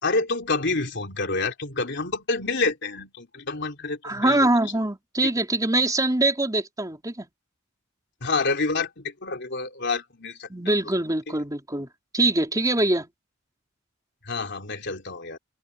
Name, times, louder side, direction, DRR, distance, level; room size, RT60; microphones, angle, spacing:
voice 1, 0.0-4.5 5.2-5.3 8.2-10.7 14.2-15.4, left 3 dB, 60° left, 3.5 m, -28 dB
voice 2, 4.0-7.3 10.5-11.9 12.1-13.1, right 2 dB, 15° right, 3.6 m, -23 dB
open air
head